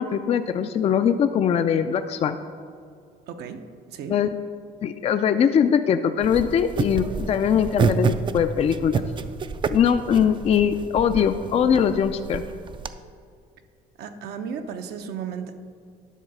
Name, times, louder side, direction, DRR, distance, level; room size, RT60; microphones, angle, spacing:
voice 1, 0.0-2.4 4.1-4.3 4.8-9.0 9.7-12.4, left 8 dB, 40° left, 9 dB, 0.4 m, -21 dB
voice 2, 3.3-4.2 14.0-15.5, right 7 dB, 70° right, 6 dB, 0.7 m, -34 dB
sound 1, 6.2-12.9, right 5 dB, 30° right, 0.4 m, -29 dB
10.0 x 3.9 x 6.8 m, 2.3 s
cardioid pair, 110°, 17 cm